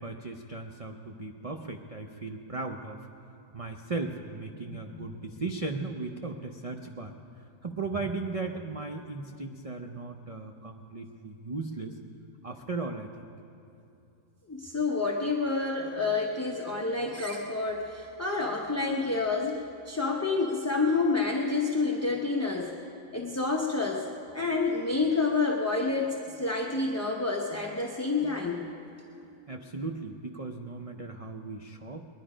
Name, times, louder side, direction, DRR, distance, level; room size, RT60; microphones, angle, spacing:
voice 1, 0.0-3.1 3.5-12.0 12.4-13.1 29.5-32.0, right 3 dB, 70° right, 3 dB, 0.3 m, -37 dB
voice 2, 4.7-5.0 14.5-22.7 23.1-24.1 24.3-28.7, left 3 dB, 15° left, -1 dB, 0.6 m, -29 dB
21.0 x 11.0 x 5.0 m, 2.8 s
omnidirectional pair, 1.6 m